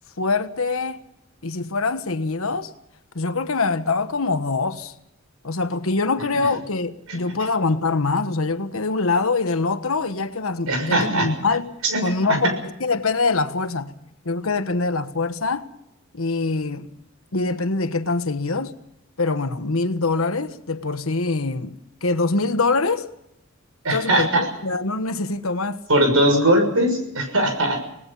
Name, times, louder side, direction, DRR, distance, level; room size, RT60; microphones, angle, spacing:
voice 1, 0.2-1.0 1.4-2.7 3.1-4.9 5.4-13.9 14.2-15.7 16.1-16.9 17.3-18.7 19.2-23.1 23.9-25.8, left 3 dB, 85° left, 1.3 m, -24 dB
voice 2, 10.7-11.3 11.8-12.4 23.8-24.5 25.9-27.8, right 1 dB, 90° right, 6.5 m, -20 dB
26.0 x 19.0 x 5.6 m
head